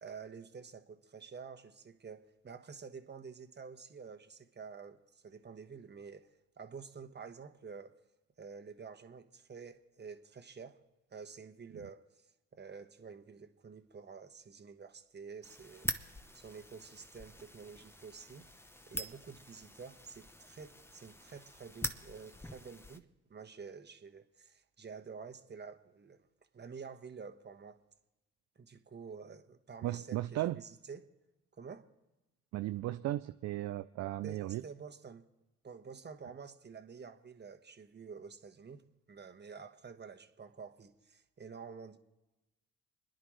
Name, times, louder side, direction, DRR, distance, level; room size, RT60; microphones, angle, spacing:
voice 1, 0.0-6.3 6.6-8.0 8.4-10.8 11.1-12.0 12.5-15.9 16.3-18.5 18.9-26.3 26.5-27.8 28.6-31.1 31.5-31.9 34.2-35.2 35.6-42.0, right 5 dB, 35° right, 1.3 m, -49 dB
sound 1, 15.4-23.0, left 1 dB, 10° left, 0.9 m, -44 dB
voice 2, 29.8-30.6 32.5-34.6, right 15 dB, 60° right, 0.4 m, -36 dB
29.5 x 10.5 x 3.2 m
supercardioid pair, 55°, 31 cm